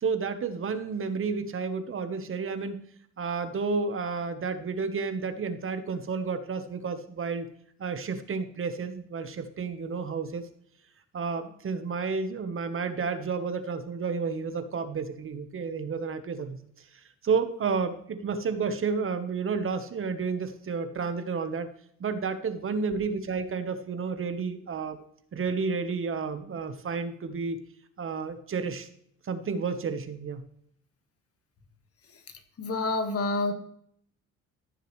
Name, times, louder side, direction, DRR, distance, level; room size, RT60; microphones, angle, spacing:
voice 1, 0.0-2.8 3.2-7.5 7.8-10.5 11.1-16.6 16.9-21.7 22.0-25.0 25.3-27.6 28.0-28.9 29.2-30.4, right 5 dB, 45° right, 10 dB, 1.1 m, -31 dB
voice 2, 32.6-33.5, left 2 dB, 50° left, 7 dB, 1.7 m, -27 dB
14.5 x 6.6 x 3.2 m, 0.66 s
cardioid pair, 90°, 30 cm